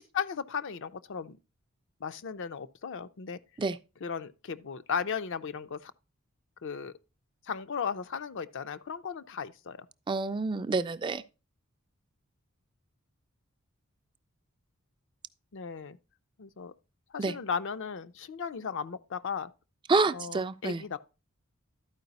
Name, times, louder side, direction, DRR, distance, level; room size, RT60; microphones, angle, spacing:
voice 1, 0.0-1.4 2.0-3.4 4.0-5.9 6.6-6.9 7.5-9.9 15.5-16.0 16.4-16.7 17.1-19.5 20.1-21.0, left 6 dB, 60° left, 0.5 m, -36 dB
voice 2, 10.1-11.2 17.2-17.3 19.9-20.8, right 3 dB, 20° right, 0.3 m, -28 dB
12.0 x 4.8 x 4.0 m
head